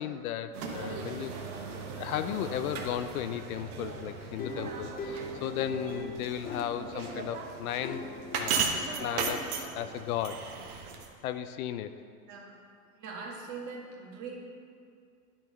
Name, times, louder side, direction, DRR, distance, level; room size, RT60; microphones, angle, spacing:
voice 1, 0.0-1.3 1.9-8.0 8.4-10.5 11.2-11.9, left 10 dB, 70° left, 10 dB, 0.6 m, -35 dB
sound 1, 0.5-11.1, right 5 dB, 75° right, 1.3 m, -37 dB
sound 2, 4.4-7.4 7.8-8.7 9.2-9.5, left 2 dB, 20° left, 0.6 m, -40 dB
voice 2, 12.3-12.6 12.9-14.4, right 4 dB, 40° right, -1 dB, 1.8 m, -41 dB
10.5 x 4.5 x 5.2 m, 2.3 s
hypercardioid pair, 120°, 45 cm